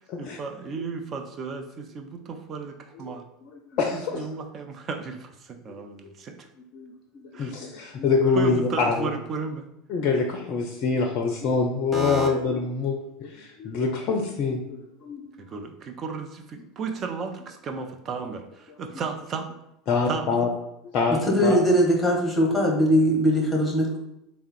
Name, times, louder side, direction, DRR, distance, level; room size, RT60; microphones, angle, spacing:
voice 1, 0.2-3.3 3.9-6.5 7.3-7.5 8.3-9.7 15.4-19.5 20.1-20.2, right 5 dB, 35° right, 6 dB, 0.4 m, -34 dB
voice 2, 3.4-4.3 6.7-9.1 9.9-15.2 16.6-16.7 19.9-20.5 20.9-21.6, left 4 dB, 45° left, 2 dB, 0.4 m, -25 dB
voice 3, 11.9-12.3 21.1-24.0, equal, 10° left, -1 dB, 1.1 m, -21 dB
3.5 x 2.1 x 4.3 m, 0.84 s
figure-of-eight pair, 75°, 0 cm